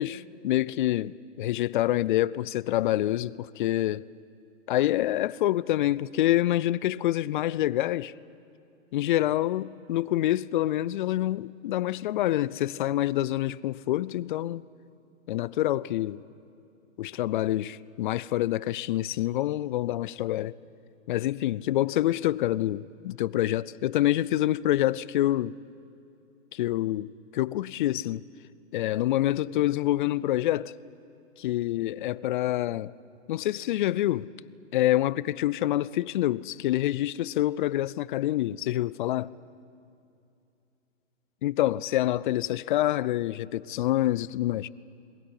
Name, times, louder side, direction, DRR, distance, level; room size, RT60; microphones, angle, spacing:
voice 1, 0.0-4.1 4.7-8.1 8.9-14.6 15.3-16.2 17.0-20.5 21.1-25.5 26.5-28.2 28.7-30.7 31.4-32.9 33.3-34.3 34.7-39.3 41.4-44.7, left 14 dB, 40° left, 0.5 m, -27 dB
21.5 x 18.5 x 9.8 m
hypercardioid pair, 145°, 38 cm